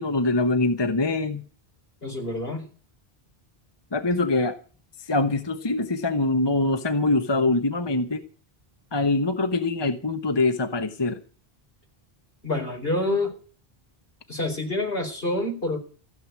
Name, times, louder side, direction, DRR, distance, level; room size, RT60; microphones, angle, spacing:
voice 1, 0.0-1.4 3.9-4.6 5.1-8.2 8.9-11.2, left 2 dB, 25° left, 8 dB, 1.1 m, -24 dB
voice 2, 2.0-2.6 12.4-13.4 14.3-15.8, left 2 dB, 65° left, 3 dB, 4.7 m, -27 dB
16.0 x 7.9 x 9.6 m, 0.40 s
omnidirectional pair, 1.0 m